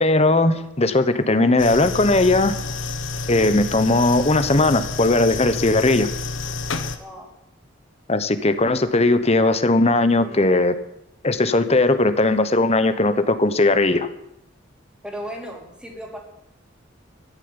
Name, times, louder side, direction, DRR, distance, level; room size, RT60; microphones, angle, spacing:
voice 1, 0.0-2.5 3.3-6.1 8.1-10.7 11.2-14.1, left 2 dB, 30° left, 10 dB, 1.1 m, -18 dB
sound 1, 1.6-7.0, left 4 dB, 80° left, 1.3 m, -29 dB
voice 2, 7.0-7.3 10.2-10.6 15.0-16.2, equal, 5° right, -1 dB, 3.5 m, -36 dB
14.5 x 7.4 x 9.8 m, 0.83 s
head